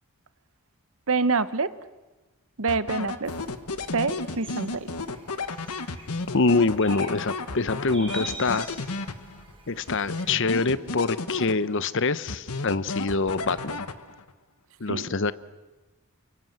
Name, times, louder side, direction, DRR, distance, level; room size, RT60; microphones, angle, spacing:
voice 1, 1.1-1.7 2.6-3.3 3.9-4.9 14.9-15.1, right 4 dB, 65° right, 14 dB, 1.0 m, -26 dB
sound 1, 2.7-9.5 9.9-11.9 12.3-14.3, left 3 dB, 90° left, 1.5 m, -33 dB
sound 2, 3.2-10.4, right 2 dB, 25° right, 4.8 m, -45 dB
voice 2, 6.3-8.7 9.7-13.8 14.8-15.3, left 3 dB, 55° left, 15 dB, 0.9 m, -25 dB
29.0 x 24.5 x 7.9 m, 1.2 s
head